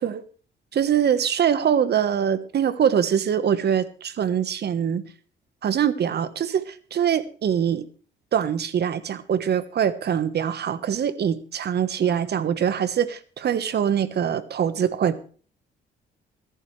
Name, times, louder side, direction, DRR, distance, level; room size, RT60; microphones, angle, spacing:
voice 1, 0.7-5.1 5.6-7.9 8.3-15.2, right 8 dB, 55° right, 13 dB, 1.3 m, -23 dB
21.5 x 11.0 x 3.3 m, 0.41 s
cardioid pair, 90°, 20 cm